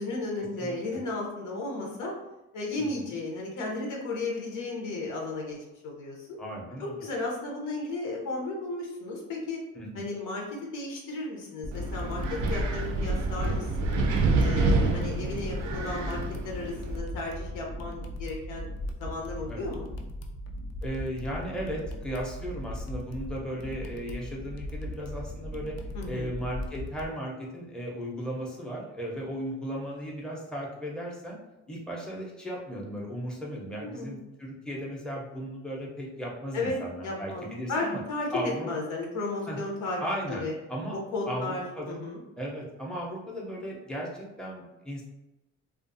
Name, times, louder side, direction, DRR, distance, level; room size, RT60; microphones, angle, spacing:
voice 1, 0.0-2.1 2.5-5.6 5.8-6.4 6.8-9.6 9.9-14.0 14.3-18.7 19.0-19.9 25.9-26.3 33.8-34.1 36.5-36.8 37.0-40.0 40.4-40.5 40.9-42.2, left 2 dB, 85° left, -1 dB, 0.8 m, -34 dB
voice 2, 0.6-1.0 2.8-3.1 6.4-7.0 9.7-10.1 19.5-19.7 20.8-25.8 26.1-31.4 31.7-38.0 38.3-38.7 39.5-39.6 40.0-41.0 41.3-42.0 42.4-45.0, equal, 5° left, -3 dB, 0.6 m, -36 dB
sound 1, 11.6-27.1, left 1 dB, 60° left, 0.5 m, -38 dB
Wind, 11.7-17.0, right 3 dB, 75° right, 0.5 m, -27 dB
2.5 x 2.3 x 2.6 m, 0.96 s
cardioid pair, 90°, 30 cm